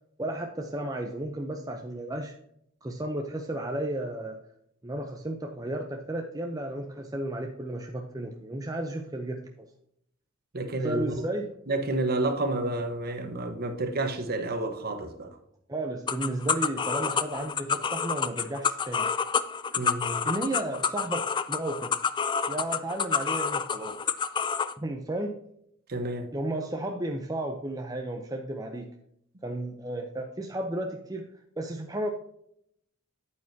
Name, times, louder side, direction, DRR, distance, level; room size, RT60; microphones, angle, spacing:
voice 1, 0.2-2.3 2.8-4.4 4.8-9.7 10.8-11.5 15.7-19.1 20.2-21.9 22.5-24.0 24.8-25.4 26.3-28.9 29.4-31.2 31.6-32.1, right 1 dB, 15° right, 0.6 m, -33 dB
voice 2, 10.5-11.1 11.7-15.4 19.8-20.3 25.9-26.3, right 2 dB, 45° right, 1.2 m, -30 dB
sound 1, 16.1-24.7, left 6 dB, 20° left, 0.3 m, -28 dB
8.9 x 8.6 x 2.8 m
head